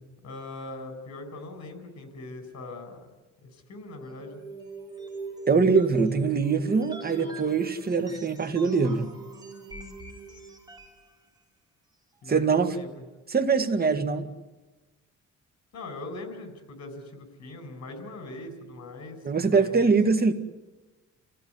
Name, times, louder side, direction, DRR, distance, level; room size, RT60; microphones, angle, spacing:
voice 1, 0.2-3.1 3.4-4.4 12.2-12.9 15.7-19.2 19.5-19.9, left 2 dB, 60° left, 5.8 m, -41 dB
sound 1, 3.9-11.1, right 3 dB, 15° right, 5.0 m, -42 dB
voice 2, 5.5-9.1 12.3-12.8 13.3-14.3 19.2-20.3, right 4 dB, 30° right, 2.1 m, -23 dB
29.5 x 15.0 x 9.7 m
cardioid pair, 90°, 30 cm